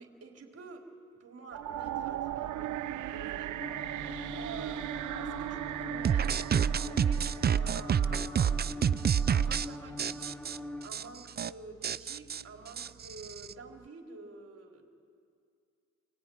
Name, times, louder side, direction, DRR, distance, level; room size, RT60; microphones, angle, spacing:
voice 1, 0.0-3.6 4.4-9.0 9.3-14.9, right 4 dB, 50° right, 1 dB, 4.1 m, -48 dB
sound 1, 1.5-8.6, right 12 dB, 75° right, 0.8 m, -38 dB
sound 2, 3.6-10.9, left 2 dB, 5° left, 2.1 m, -43 dB
sound 3, 6.1-9.7 10.0-10.6 10.9-11.0 11.3-11.5 11.8-13.5, right 8 dB, 35° right, 0.5 m, -28 dB
24.5 x 21.5 x 9.5 m, 2.4 s
cardioid pair, 90°, 30 cm